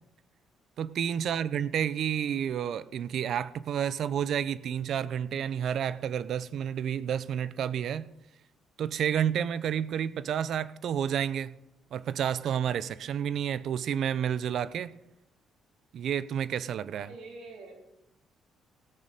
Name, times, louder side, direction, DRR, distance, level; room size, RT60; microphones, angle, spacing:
voice 1, 0.8-8.1 8.8-11.6 11.9-15.0 15.9-17.1, right 9 dB, 55° right, 17 dB, 0.5 m, -30 dB
voice 2, 16.9-17.7, right 3 dB, 80° right, 0 dB, 3.4 m, -46 dB
16.5 x 6.7 x 5.1 m, 0.90 s
cardioid pair, 140°, 0 cm